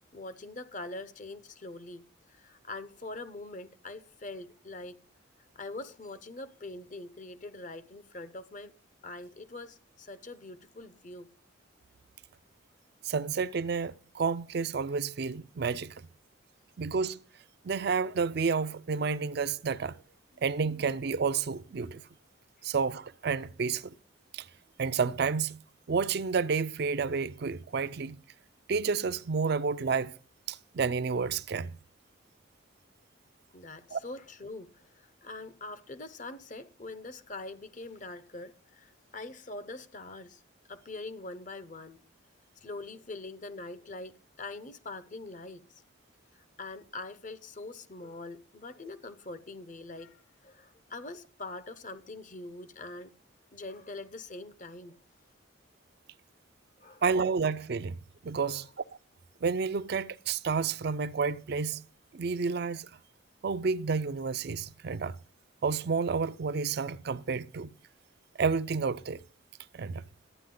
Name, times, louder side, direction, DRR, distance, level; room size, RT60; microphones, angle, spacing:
voice 1, 0.1-5.0 5.6-8.7 9.0-11.3 33.5-40.4 40.7-42.0 42.6-45.8 46.3-53.1 53.5-55.0 56.8-57.0 58.4-58.6, left 2 dB, 40° left, 0.7 m, -43 dB
voice 2, 13.0-15.9 16.8-17.2 17.6-20.0 20.4-22.0 22.6-23.9 24.3-24.5 24.8-25.6 25.9-28.2 28.7-30.1 30.5-31.8 33.9-34.0 57.0-58.0 58.2-58.7 59.4-61.8 62.1-62.9 63.4-65.1 65.6-67.7 68.4-69.2 69.7-70.0, right 5 dB, 50° right, 0.4 m, -30 dB
12.0 x 9.3 x 3.8 m
head